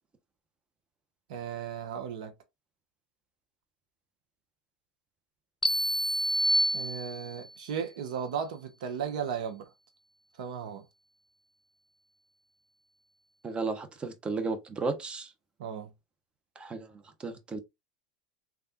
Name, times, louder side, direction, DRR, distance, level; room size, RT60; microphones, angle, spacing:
voice 1, 1.3-2.3 6.7-9.7 10.4-10.8 15.6-15.9, right 7 dB, 70° right, 0.6 m, -35 dB
sound 1, 5.6-7.5, equal, 5° left, 0.6 m, -27 dB
voice 2, 13.4-15.3 16.6-17.6, right 4 dB, 25° right, 0.8 m, -34 dB
3.3 x 2.3 x 2.7 m
hypercardioid pair, 85°, 4 cm